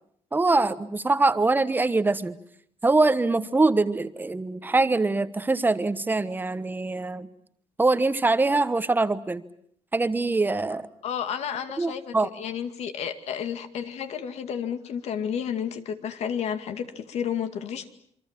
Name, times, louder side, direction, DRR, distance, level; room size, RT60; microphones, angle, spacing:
voice 1, 0.3-2.3 2.8-7.3 7.8-9.4 9.9-10.9 11.8-12.3, right 3 dB, 15° right, 13 dB, 1.2 m, -23 dB
voice 2, 11.0-17.9, left 8 dB, 75° left, 8 dB, 2.3 m, -31 dB
28.0 x 23.5 x 7.5 m, 0.68 s
cardioid pair, 125°, 11 cm